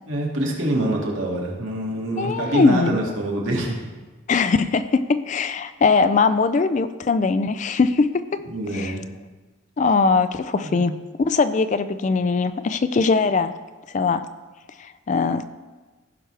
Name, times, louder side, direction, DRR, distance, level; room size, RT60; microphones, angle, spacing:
voice 1, 0.1-3.8 8.5-9.0 10.6-10.8, right 1 dB, 75° right, -2 dB, 2.1 m, -25 dB
voice 2, 2.2-3.0 4.3-8.1 8.7-8.9 9.8-13.5 13.9-14.2 14.8-15.4, left 4 dB, 35° left, 12 dB, 0.3 m, -21 dB
15.5 x 6.0 x 3.4 m, 1.3 s
head